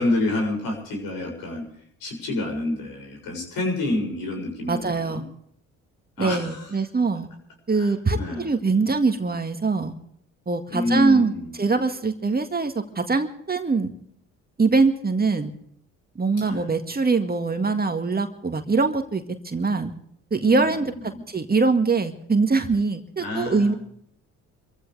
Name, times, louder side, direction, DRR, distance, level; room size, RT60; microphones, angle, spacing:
voice 1, 0.0-1.7 2.0-5.2 6.2-6.8 7.7-8.5 10.7-11.6 16.4-16.7 20.4-21.3 23.2-23.8, left 2 dB, 70° left, 2 dB, 7.3 m, -28 dB
voice 2, 4.7-5.2 6.2-7.3 7.7-9.9 10.5-11.3 11.6-13.9 14.6-15.5 16.2-19.9 20.3-20.9 21.3-23.7, right 4 dB, 25° right, 6 dB, 1.9 m, -23 dB
27.5 x 15.0 x 3.4 m, 0.67 s
hypercardioid pair, 55°, 36 cm